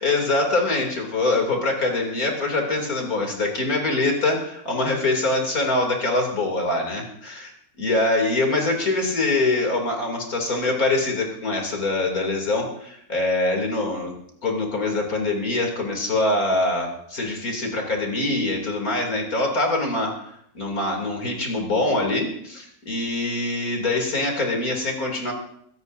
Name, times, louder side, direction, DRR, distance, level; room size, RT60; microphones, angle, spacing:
voice 1, 0.0-7.5 7.8-14.1 14.4-25.3, left 2 dB, 70° left, 1 dB, 3.4 m, -24 dB
23.5 x 17.0 x 2.7 m, 0.69 s
omnidirectional pair, 1.6 m